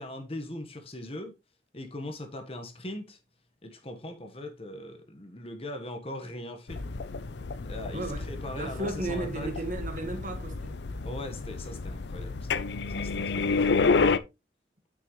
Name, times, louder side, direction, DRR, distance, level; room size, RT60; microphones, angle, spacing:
voice 1, 0.0-1.3 1.7-3.2 3.6-6.8 7.7-9.5 11.0-12.5 12.9-13.8, left 1 dB, 30° left, 1.3 m, -40 dB
sound 1, 6.7-14.2, left 4 dB, 70° left, 0.6 m, -30 dB
voice 2, 7.9-8.2 8.5-10.7, right 2 dB, 45° right, 1.7 m, -34 dB
9.2 x 6.1 x 3.1 m
head